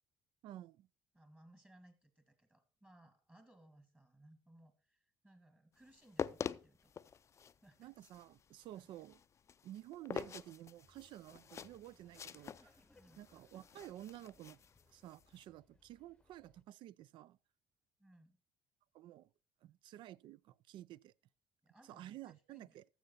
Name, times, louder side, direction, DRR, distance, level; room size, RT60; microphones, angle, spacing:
voice 1, 0.4-0.9 7.8-9.2 9.6-12.8 13.2-14.6 14.9-17.4 18.9-19.3 19.6-21.1 21.8-22.8, right 13 dB, 65° right, 0.4 m, -52 dB
voice 2, 1.1-6.9 7.6-7.9 8.7-8.9 12.9-13.2 18.0-18.4 21.6-22.8, right 1 dB, 15° right, 1.7 m, -64 dB
sound 1, 5.9-15.4, left 7 dB, 35° left, 0.4 m, -47 dB
Laughter, 10.8-16.6, left 2 dB, 10° left, 0.8 m, -70 dB
13.0 x 6.9 x 4.0 m
cardioid pair, 110°, 9 cm